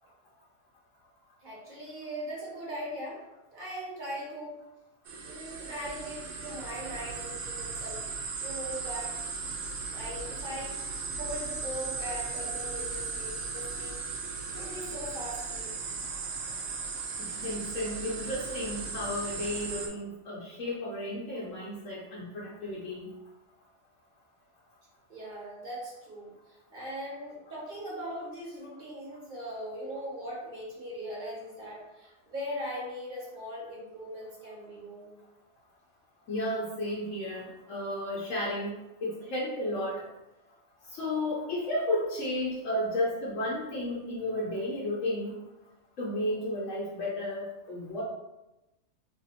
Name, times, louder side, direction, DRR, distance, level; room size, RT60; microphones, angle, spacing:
voice 1, 1.4-3.2 3.5-4.6 5.2-8.1 8.4-9.2 9.9-10.8 11.2-14.0 14.5-15.8 25.1-35.1, equal, 45° right, -5 dB, 1.1 m, -40 dB
sound 1, 5.1-19.9, right 4 dB, 90° right, 1.0 m, -37 dB
voice 2, 17.2-23.1 36.3-40.0 40.9-45.4 46.0-48.0, left 1 dB, 85° left, -7 dB, 1.2 m, -33 dB
3.0 x 2.5 x 4.0 m, 0.97 s
omnidirectional pair, 1.3 m